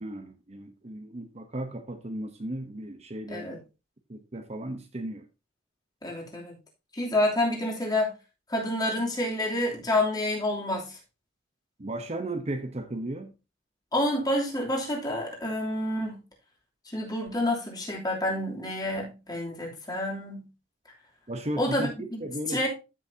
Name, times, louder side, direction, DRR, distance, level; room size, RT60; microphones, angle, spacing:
voice 1, 0.0-3.6 4.1-5.2 11.8-13.3 21.3-21.9 22.2-22.7, right 1 dB, 35° right, 0.9 m, -35 dB
voice 2, 3.3-3.6 6.0-6.5 6.9-8.1 8.5-11.0 13.9-16.2 16.9-20.5 21.6-22.7, left 1 dB, 20° left, 3.1 m, -28 dB
14.0 x 6.3 x 2.8 m
head